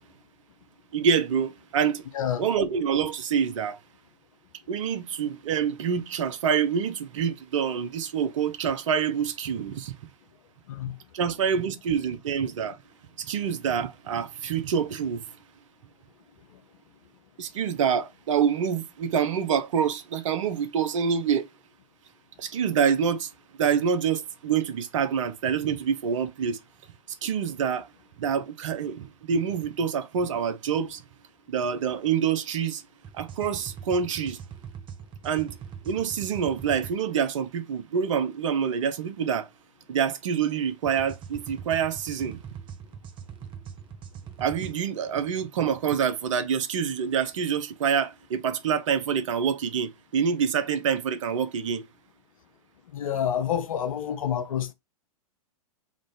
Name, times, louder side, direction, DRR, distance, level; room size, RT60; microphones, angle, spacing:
voice 1, 0.9-2.0 2.4-3.8 4.7-9.9 11.1-12.8 13.2-15.2 17.4-21.5 22.4-23.3 23.6-26.6 27.2-27.9 28.2-31.0 31.5-32.8 33.1-34.4 35.2-35.5 35.8-39.5 39.9-42.4 44.4-51.8, right 7 dB, 60° right, 0.8 m, -26 dB
voice 2, 2.1-2.5 10.7-11.0 52.9-54.7, left 9 dB, 70° left, 0.7 m, -28 dB
sound 1, 33.0-37.0 40.8-44.7, right 7 dB, 25° right, 0.8 m, -42 dB
3.6 x 2.5 x 3.8 m
figure-of-eight pair, 100°, 18 cm